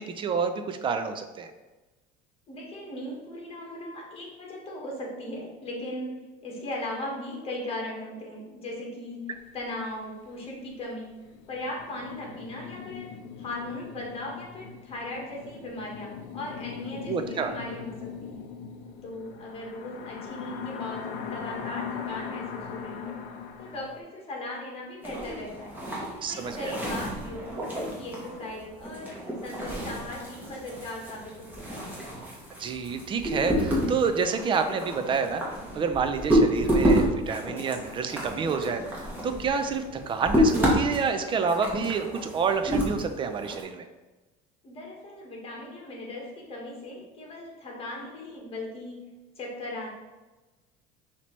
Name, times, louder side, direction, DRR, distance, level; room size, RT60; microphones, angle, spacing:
voice 1, 0.0-1.5 17.1-17.5 26.2-26.7 32.6-35.4 35.7-43.8, right 5 dB, 25° right, 7 dB, 0.4 m, -28 dB
voice 2, 2.5-11.1 11.5-13.1 13.4-18.5 19.0-23.2 23.6-25.8 26.3-29.1 29.4-31.8 44.6-49.0 49.3-49.9, left 1 dB, 30° left, -1 dB, 1.4 m, -38 dB
sound 1, 9.4-9.5 9.6-9.8 10.3-10.4 11.0-24.0, left 7 dB, 70° left, 0.5 m, -40 dB
sound 2, 25.0-43.6, equal, 10° right, 1.2 m, -29 dB
5.8 x 2.8 x 3.1 m, 1.1 s
cardioid pair, 125°, 18 cm